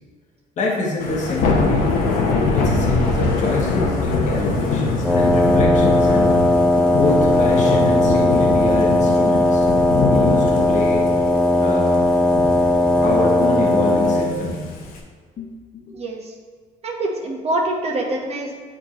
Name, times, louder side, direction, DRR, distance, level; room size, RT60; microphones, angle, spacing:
voice 1, 0.6-1.9 2.5-6.5 6.9-9.7 10.1-11.1 11.6-12.1 13.0-14.8 15.4-16.0, left 2 dB, 55° left, -1 dB, 1.3 m, -26 dB
Thunder / Rain, 1.0-15.0, left 3 dB, 75° left, 1.0 m, -23 dB
Wind instrument woodwind instrument, 5.0-14.4, left 1 dB, 5° left, 0.6 m, -17 dB
voice 2, 15.9-16.3 16.8-18.6, right 1 dB, 45° right, 0 dB, 1.1 m, -25 dB
8.9 x 3.7 x 3.1 m, 1.6 s
supercardioid pair, 80°, 15 cm